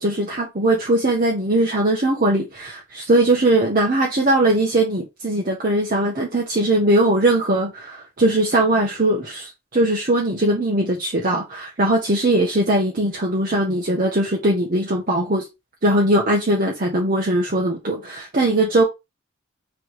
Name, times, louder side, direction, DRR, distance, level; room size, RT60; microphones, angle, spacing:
voice 1, 0.0-15.4 15.8-18.8, right 1 dB, 40° right, 1.0 m, -20 dB
3.6 x 3.1 x 4.7 m
head